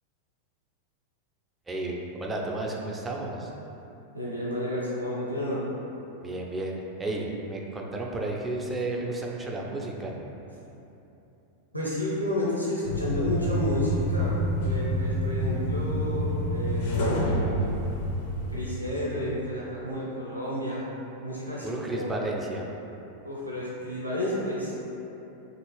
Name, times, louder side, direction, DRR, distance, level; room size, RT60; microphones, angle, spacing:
voice 1, 1.7-3.5 6.2-10.3 21.6-22.7, right 2 dB, 15° right, -1 dB, 0.4 m, -32 dB
voice 2, 4.1-5.6 11.7-17.5 18.5-20.8 21.2-22.1 23.2-24.7, left 1 dB, 90° right, -6 dB, 0.4 m, -31 dB
sound 1, 12.8-18.7, equal, 55° left, 0.4 m, -27 dB
2.9 x 2.4 x 3.1 m, 3.0 s
figure-of-eight pair, 90°, 0 cm